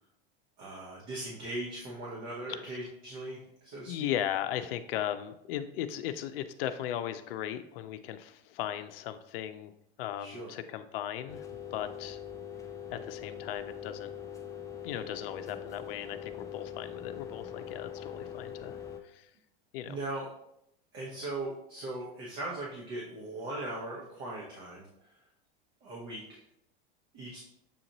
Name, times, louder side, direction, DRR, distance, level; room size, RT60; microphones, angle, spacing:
voice 1, 0.6-4.1 10.2-10.5 19.9-20.3 20.9-25.1 25.8-26.4 27.1-27.4, right 2 dB, 60° right, -4 dB, 1.2 m, -39 dB
voice 2, 3.9-9.7 10.0-11.5 11.7-12.2 12.9-14.1 14.8-18.8 19.0-19.3 19.7-20.0, left 11 dB, 75° left, 9 dB, 0.4 m, -37 dB
sound 1, 11.3-19.0, left 8 dB, 10° left, 0.5 m, -42 dB
6.9 x 2.5 x 2.9 m, 0.79 s
hypercardioid pair, 105°, 29 cm